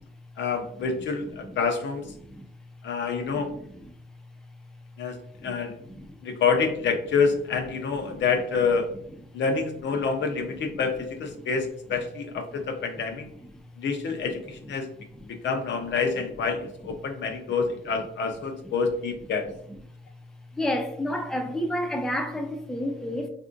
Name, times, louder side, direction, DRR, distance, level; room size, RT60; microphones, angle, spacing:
voice 1, 0.4-2.1 2.8-3.5 5.0-5.8 6.2-8.9 9.3-13.3 13.8-14.9 15.2-19.5, left 5 dB, 65° left, 0.6 m, -27 dB
voice 2, 20.5-23.3, left 1 dB, 5° left, 0.4 m, -30 dB
3.4 x 2.5 x 2.5 m
cardioid pair, 90°, 20 cm